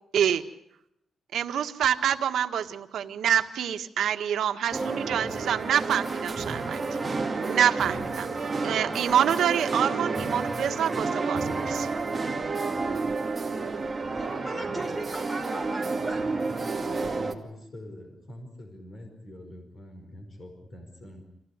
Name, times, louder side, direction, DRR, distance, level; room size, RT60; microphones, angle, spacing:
voice 1, 1.3-6.8 7.5-11.9, right 9 dB, 80° right, 7 dB, 1.7 m, -26 dB
sound 1, 4.7-17.3, right 3 dB, 20° right, 2.4 m, -30 dB
voice 2, 14.1-16.3, right 1 dB, 5° left, 3 dB, 4.4 m, -38 dB
voice 3, 17.0-21.2, left 1 dB, 35° left, 4 dB, 5.1 m, -45 dB
27.0 x 16.5 x 9.7 m, 0.78 s
wide cardioid pair, 170°, 0 cm